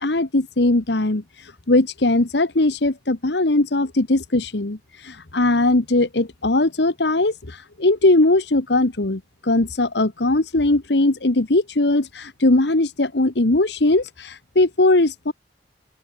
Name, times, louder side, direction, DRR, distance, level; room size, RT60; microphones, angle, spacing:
voice 1, 0.0-15.3, left 2 dB, 70° left, 1.4 m, -20 dB
open air
head